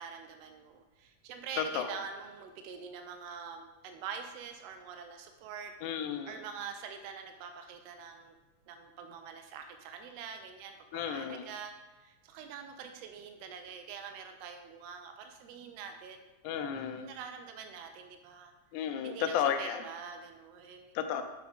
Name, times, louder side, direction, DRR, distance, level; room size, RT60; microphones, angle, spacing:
voice 1, 0.0-8.4 8.7-11.7 12.0-16.2 17.0-18.5 19.0-20.9, right 6 dB, 90° right, 6 dB, 1.4 m, -45 dB
voice 2, 5.8-6.4 10.9-11.5 16.4-17.1 18.7-19.8 21.0-21.2, left 8 dB, 85° left, 7 dB, 2.0 m, -33 dB
7.2 x 4.7 x 3.5 m, 1.1 s
omnidirectional pair, 3.4 m